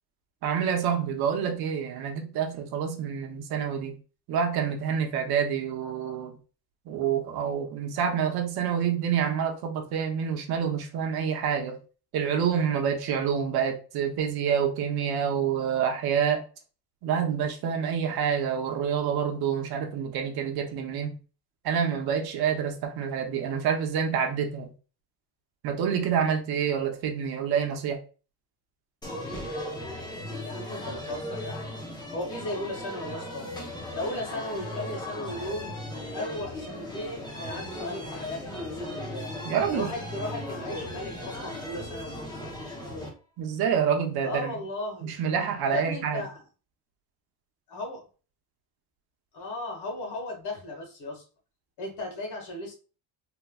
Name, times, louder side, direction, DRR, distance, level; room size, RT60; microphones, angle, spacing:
voice 1, 0.4-3.9 4.3-6.4 6.9-11.8 12.1-16.4 17.0-21.1 21.6-24.7 25.6-28.0 39.4-39.9 43.4-44.5 45.0-46.2, right 7 dB, 60° right, 0.8 m, -27 dB
sound 1, 29.0-43.1, left 1 dB, 10° left, 0.6 m, -37 dB
voice 2, 30.4-31.7 32.1-33.5 33.9-35.7 36.1-39.3 39.7-42.2 44.2-45.1 45.7-46.4 47.7-48.1 49.3-51.2 51.8-52.7, left 1 dB, 70° left, 1.6 m, -36 dB
3.3 x 3.0 x 2.3 m
cardioid pair, 150°, 41 cm